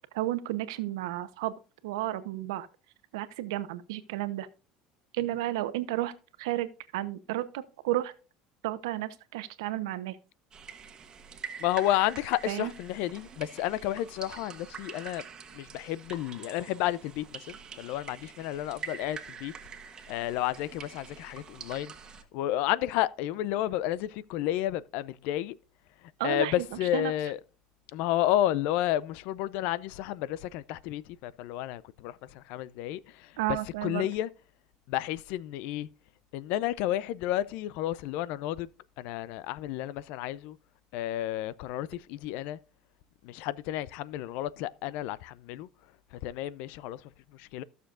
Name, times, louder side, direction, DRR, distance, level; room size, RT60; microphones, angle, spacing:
voice 1, 0.1-1.5 1.8-2.7 3.1-4.5 5.1-6.1 6.4-8.1 8.6-10.2 12.5-12.7 26.2-26.6 26.9-27.1 33.4-34.1, right 15 dB, 90° right, 0.9 m, -32 dB
sound 1, 10.5-22.2, right 6 dB, 30° right, 1.4 m, -45 dB
voice 2, 11.6-15.2 15.5-19.5 20.1-21.9 22.3-25.6 26.0-27.4 27.9-34.3 34.9-35.9 36.3-38.7 39.0-40.6 40.9-42.6 43.2-45.7 46.1-47.6, left 13 dB, 70° left, 0.5 m, -31 dB
15.5 x 6.8 x 2.5 m
supercardioid pair, 110°, 2 cm